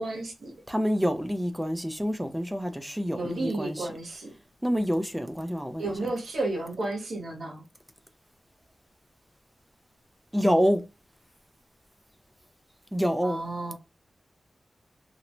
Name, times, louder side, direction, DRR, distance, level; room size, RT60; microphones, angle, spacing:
voice 1, 0.0-0.5 3.2-4.3 5.8-7.6 13.2-13.7, right 2 dB, 85° right, 0.8 m, -32 dB
voice 2, 0.7-4.0 4.6-6.1 10.3-10.8 12.9-13.4, equal, 5° right, 0.4 m, -27 dB
3.0 x 2.1 x 2.5 m
wide cardioid pair, 100°, 0 cm